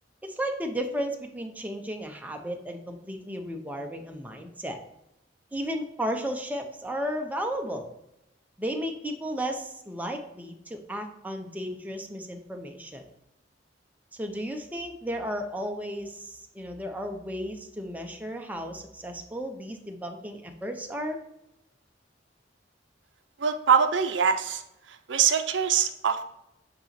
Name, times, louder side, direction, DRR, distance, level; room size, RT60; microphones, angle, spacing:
voice 1, 0.2-4.8 5.5-7.9 8.6-13.0 14.1-21.2, equal, 10° right, 3 dB, 0.6 m, -34 dB
voice 2, 23.4-24.6 24.9-26.2, right 7 dB, 70° right, 7 dB, 0.6 m, -23 dB
8.3 x 2.9 x 4.3 m, 0.85 s
head